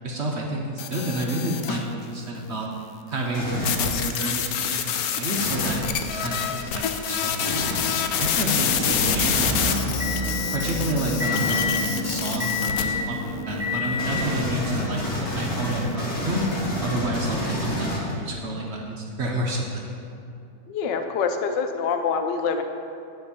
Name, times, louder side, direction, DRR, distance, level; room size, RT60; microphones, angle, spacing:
voice 1, 0.0-2.7 3.1-7.7 8.2-10.1 10.5-19.9, right 1 dB, 55° right, -1 dB, 0.8 m, -29 dB
sound 1, 0.8-1.9 3.6-12.8, left 8 dB, 70° left, 0.9 m, -27 dB
sound 2, 3.3-3.9 5.3-5.9 7.4-7.9 9.3-9.8 11.2-11.7 14.0-18.4, equal, 40° left, 1.6 m, -29 dB
Motor vehicle (road) / Engine, 8.3-14.4, left 3 dB, 20° right, 0.9 m, -28 dB
voice 2, 20.7-22.6, left 5 dB, 85° left, 6 dB, 1.3 m, -25 dB
9.4 x 3.5 x 6.8 m, 2.5 s
omnidirectional pair, 1.9 m